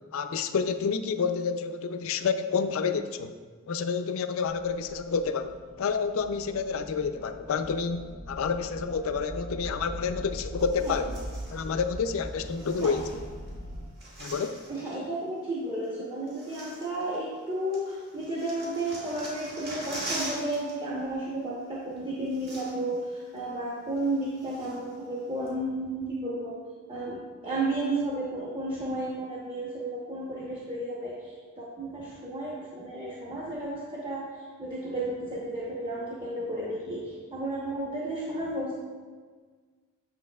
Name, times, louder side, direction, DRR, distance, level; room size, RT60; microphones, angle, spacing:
voice 1, 0.1-3.3 3.7-11.1 11.5-13.2 14.2-14.6, left 5 dB, 65° left, 9 dB, 0.4 m, -29 dB
sound 1, 4.4-13.8, right 1 dB, 75° right, 1.4 m, -41 dB
sound 2, 10.6-11.7 12.4-13.5 13.8-15.0 15.8-15.9 16.3-17.4 17.7-20.7 21.0-21.2 22.0-22.1 22.3-23.0 23.4-23.5 24.0-24.9 25.5-25.6, right 1 dB, 45° right, 1.8 m, -42 dB
voice 2, 14.7-26.6 26.9-38.8, right 1 dB, 25° right, -5 dB, 0.8 m, -33 dB
7.3 x 6.7 x 2.3 m, 1.5 s
head